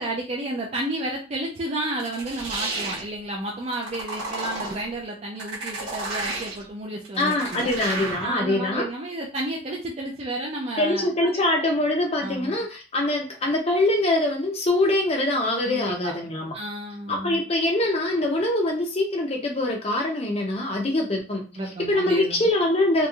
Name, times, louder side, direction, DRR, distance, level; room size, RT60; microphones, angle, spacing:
voice 1, 0.0-7.7 8.2-11.1 12.2-12.5 15.6-16.1 16.5-17.4 20.9-21.0 21.5-22.5, right 1 dB, 30° right, -2 dB, 0.4 m, -31 dB
sound 1, 2.0-3.1 3.7-4.9 5.4-6.7 7.0-8.4, right 2 dB, 80° right, 1.1 m, -32 dB
voice 2, 7.2-8.8 10.8-16.5 17.1-21.4 21.9-23.1, left 1 dB, 30° left, 1 dB, 0.5 m, -23 dB
2.9 x 2.6 x 2.3 m, 0.35 s
head